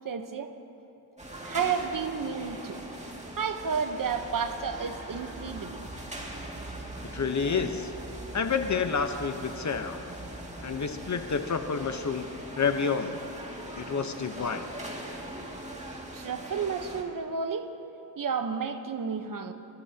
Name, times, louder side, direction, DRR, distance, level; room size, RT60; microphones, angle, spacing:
voice 1, 0.0-0.5 1.4-2.8 3.3-5.8 16.1-17.7 18.2-19.5, right 6 dB, 55° right, 7 dB, 1.2 m, -31 dB
sound 1, 1.2-17.0, right 1 dB, 15° right, 2.4 m, -41 dB
voice 2, 7.1-7.9 8.3-10.0 10.6-12.3 12.6-13.2 13.8-14.6, left 5 dB, 45° left, 7 dB, 1.1 m, -29 dB
28.5 x 13.5 x 3.0 m, 2.9 s
cardioid pair, 60°, 40 cm